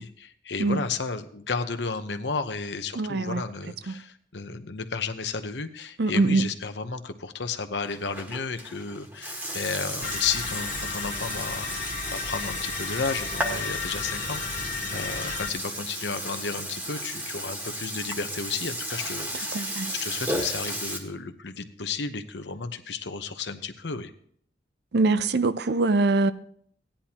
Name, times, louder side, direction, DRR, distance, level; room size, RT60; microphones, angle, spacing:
voice 1, 0.0-19.5 20.0-24.1, left 4 dB, 75° left, 0.9 m, -33 dB
voice 2, 3.0-3.4 3.9-4.0 6.0-6.5 19.5-19.9 24.9-26.3, right 3 dB, 65° right, 0.5 m, -23 dB
Burping eructation, 7.8-21.0, equal, 15° right, 1.6 m, -34 dB
sound 1, 10.0-15.5, left 4 dB, 45° left, 1.2 m, -34 dB
16.0 x 10.0 x 2.9 m
head